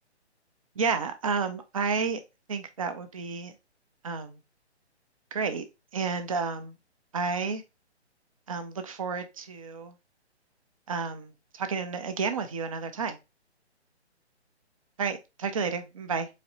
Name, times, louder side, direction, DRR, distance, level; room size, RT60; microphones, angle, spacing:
voice 1, 0.8-2.2 2.5-3.5 4.0-4.4 5.3-5.7 5.9-6.7 7.1-7.6 8.5-9.9 10.9-13.2 15.0-16.3, right 5 dB, 30° right, 0.6 m, -31 dB
4.2 x 3.1 x 3.9 m
figure-of-eight pair, 140°, 34 cm